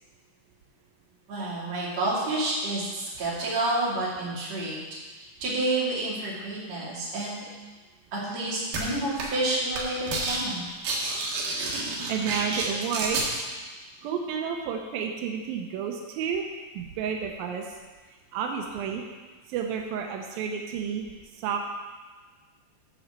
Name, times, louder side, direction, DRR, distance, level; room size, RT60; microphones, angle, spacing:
voice 1, 1.3-4.8 5.4-7.4 8.1-10.6, right 2 dB, 40° right, -7 dB, 3.5 m, -29 dB
sound 1, 8.7-8.8 9.2-9.5 9.7-10.4 10.7-13.3, right 3 dB, 65° right, 3.3 m, -29 dB
voice 2, 11.6-13.4 14.0-16.5 16.7-17.8 18.1-19.0 19.5-21.7, right 7 dB, 90° right, 2 dB, 2.0 m, -31 dB
10.5 x 5.2 x 7.4 m, 1.3 s
omnidirectional pair, 5.2 m